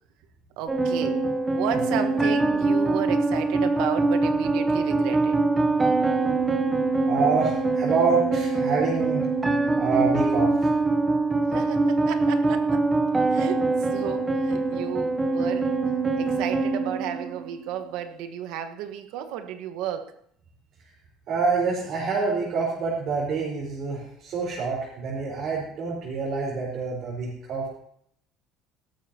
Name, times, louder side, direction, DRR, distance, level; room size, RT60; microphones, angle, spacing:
voice 1, 0.6-1.2 1.5-5.4 11.5-12.9 13.3-15.8 16.2-20.1, right 9 dB, 70° right, 8 dB, 1.4 m, -33 dB
sound 1, 0.7-17.7, right 3 dB, 10° right, 0.8 m, -24 dB
voice 2, 7.1-9.2 9.8-10.7 21.3-27.7, right 4 dB, 45° right, -6 dB, 4.6 m, -26 dB
17.5 x 13.0 x 3.0 m, 0.69 s
cardioid pair, 165°, 0 cm